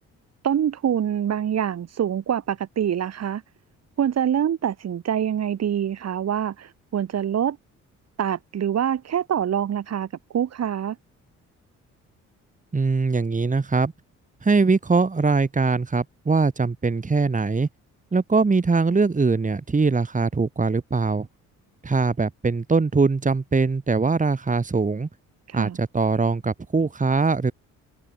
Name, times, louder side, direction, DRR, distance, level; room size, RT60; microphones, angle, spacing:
voice 1, 0.4-3.4 4.0-7.6 8.2-10.1 10.3-11.0 25.5-25.8, right 9 dB, 55° right, 3.0 m, -25 dB
voice 2, 12.7-13.9 14.4-17.7 18.1-21.3 21.8-25.1 25.5-27.5, right 4 dB, 25° right, 3.6 m, -22 dB
cardioid pair, 90°, 30 cm